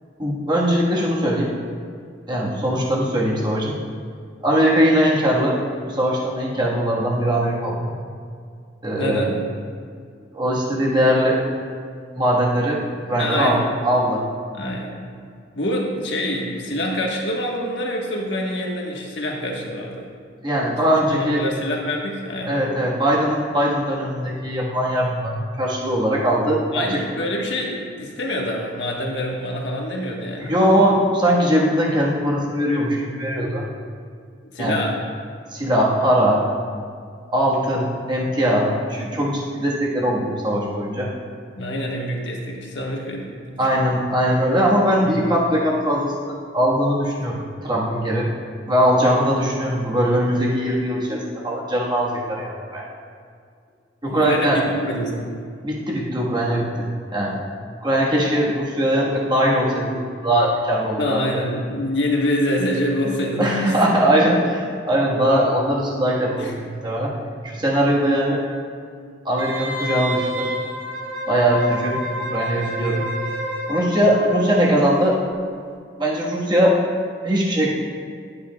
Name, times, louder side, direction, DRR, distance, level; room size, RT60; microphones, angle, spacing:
voice 1, 0.2-1.5 2.3-3.8 4.4-5.6 5.9-7.9 8.8-9.3 10.3-11.4 12.2-12.8 13.1-14.2 20.4-21.4 22.5-27.0 30.4-33.6 34.6-34.8 35.5-36.4 37.3-41.1 43.6-48.3 48.7-52.9 54.0-54.6 55.6-57.4 57.8-61.4 63.4-67.1 67.4-68.4 69.2-70.5 71.3-73.0 73.7-75.2 76.0-76.8 77.2-77.7, equal, 25° right, -4 dB, 1.4 m, -20 dB
voice 2, 9.0-9.4 13.2-13.6 14.5-15.0 15.5-20.1 21.1-22.7 26.7-30.5 34.5-35.0 41.6-43.8 45.0-45.2 54.1-55.3 61.0-63.7 66.4-66.5, equal, 80° left, -1 dB, 1.3 m, -26 dB
Wind instrument woodwind instrument, 69.4-74.9 75.2-75.3, equal, 80° right, 1.3 m, -29 dB
11.0 x 8.7 x 2.3 m, 2.2 s
head